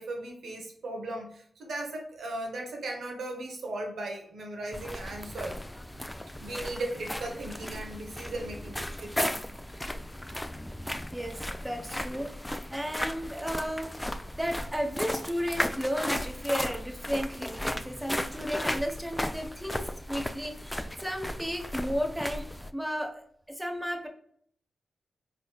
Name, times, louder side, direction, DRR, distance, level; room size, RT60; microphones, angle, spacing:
voice 1, 0.0-5.6 6.4-9.4 17.8-18.0, right 2 dB, 85° right, 1 dB, 0.9 m, -37 dB
sound 1, 4.7-22.7, left 1 dB, 10° left, 0.3 m, -35 dB
voice 2, 11.1-12.3 12.7-14.1 14.3-22.4 22.7-23.2 23.5-24.1, equal, 10° right, 3 dB, 1.0 m, -33 dB
4.1 x 3.3 x 2.3 m, 0.65 s
cardioid pair, 50°, 0 cm